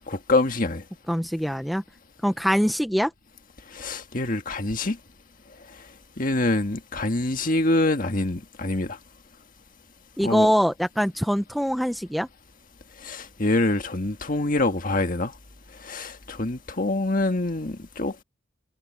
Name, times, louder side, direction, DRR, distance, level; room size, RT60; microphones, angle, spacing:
voice 1, 0.1-0.8 3.7-5.0 6.2-9.0 10.2-10.5 13.0-15.3 15.8-18.2, left 2 dB, 45° left, 1.7 m, -25 dB
voice 2, 1.1-1.8 2.2-3.1 10.2-12.3, equal, ahead, 0.8 m, -23 dB
head